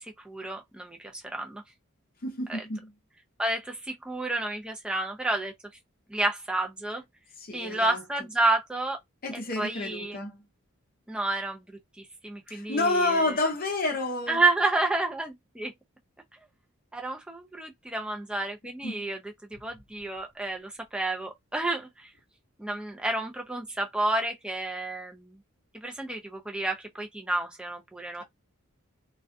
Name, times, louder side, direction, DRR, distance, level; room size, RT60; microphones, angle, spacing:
voice 1, 0.0-1.6 2.5-2.7 3.4-5.5 6.1-7.0 7.5-9.0 9.3-10.2 11.1-11.6 12.0-13.4 14.3-15.7 16.9-19.2 19.6-22.1 22.6-25.4 25.8-28.2, right 2 dB, 5° right, 0.4 m, -30 dB
voice 2, 2.2-2.9 7.4-8.0 9.2-10.4 12.5-14.4 18.8-19.0, left 2 dB, 40° left, 0.6 m, -29 dB
2.3 x 2.2 x 2.5 m
head